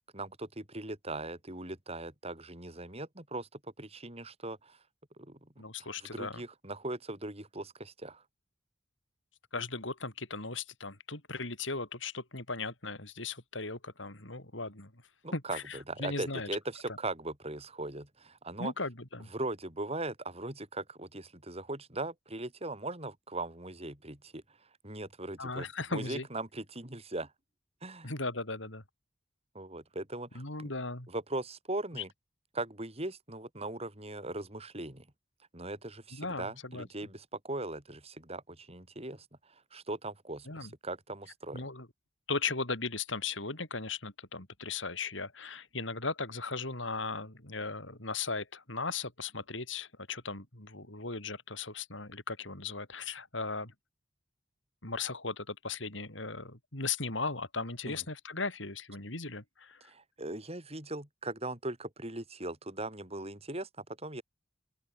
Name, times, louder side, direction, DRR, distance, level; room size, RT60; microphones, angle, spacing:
voice 1, 0.1-4.8 5.2-5.5 5.8-8.2 15.2-18.7 19.3-24.4 24.8-27.3 27.8-28.1 29.5-30.7 31.1-32.1 32.5-35.1 35.5-41.6 57.8-58.0 59.9-64.2, right 2 dB, 30° right, 6.0 m, -39 dB
voice 2, 5.6-6.4 9.5-15.0 15.3-16.5 18.6-19.3 25.4-26.3 28.0-28.8 30.3-31.1 31.9-32.0 36.1-36.9 40.5-40.7 41.5-41.9 42.3-53.7 54.8-59.9, left 4 dB, 70° left, 5.7 m, -37 dB
open air
head